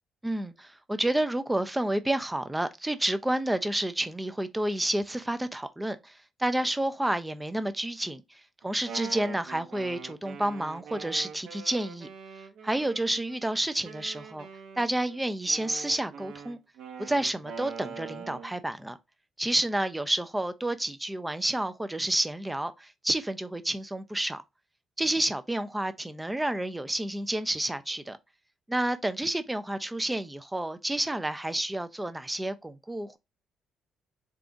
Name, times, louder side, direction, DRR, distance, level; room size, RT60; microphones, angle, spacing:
voice 1, 0.2-8.2 8.6-12.1 12.6-14.5 14.8-16.6 17.0-19.0 19.4-24.4 25.0-28.2 28.7-33.2, right 1 dB, 5° right, 0.4 m, -30 dB
Wind instrument woodwind instrument, 8.6-13.4 13.8-18.5, right 6 dB, 65° right, 0.7 m, -43 dB
3.9 x 3.5 x 2.5 m
cardioid pair, 175°, 0 cm